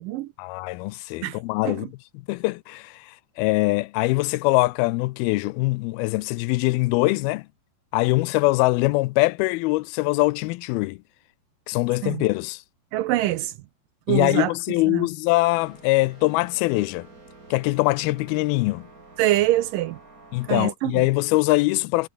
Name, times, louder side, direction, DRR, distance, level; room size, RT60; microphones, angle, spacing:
voice 1, 0.4-1.9 2.3-7.5 7.9-11.0 11.7-12.6 14.1-17.1 17.5-18.9 20.3-22.1, left 21 dB, 80° left, 2.4 m, -23 dB
voice 2, 12.9-13.5 14.1-14.5 14.9-15.0 19.2-20.0 20.5-21.0, right 15 dB, 75° right, 2.1 m, -24 dB
sound 1, 15.5-20.7, right 3 dB, 20° right, 4.6 m, -49 dB
omnidirectional pair, 4.5 m